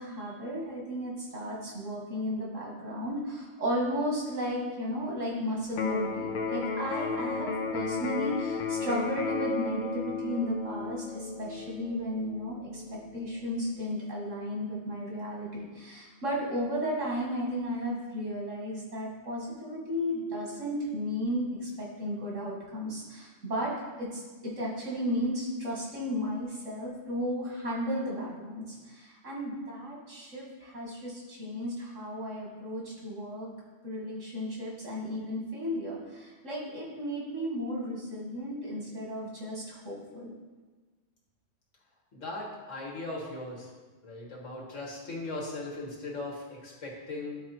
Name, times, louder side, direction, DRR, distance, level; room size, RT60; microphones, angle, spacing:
voice 1, 0.0-12.8 13.1-23.7 24.0-33.5 33.8-40.3, equal, 80° right, -3 dB, 2.4 m, -34 dB
Electric guitar, 5.7-13.7, left 4 dB, 60° left, 0.5 m, -34 dB
voice 2, 42.1-43.7 44.0-47.4, left 2 dB, 85° left, -3 dB, 2.1 m, -38 dB
12.0 x 4.3 x 4.4 m, 1.3 s
omnidirectional pair, 1.3 m